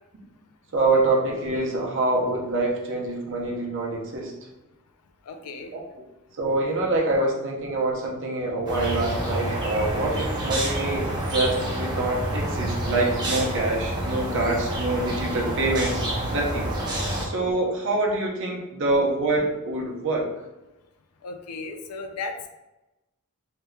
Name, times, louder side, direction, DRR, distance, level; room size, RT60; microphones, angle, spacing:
voice 1, 0.7-4.3 5.7-6.0 6.4-16.7 17.2-20.3, right 2 dB, 55° right, -1 dB, 0.7 m, -25 dB
voice 2, 5.3-5.7 21.2-22.5, left 3 dB, 80° left, 6 dB, 0.4 m, -35 dB
sound 1, 8.7-17.3, right 1 dB, 20° right, 0.6 m, -28 dB
3.4 x 2.7 x 2.2 m, 0.98 s
head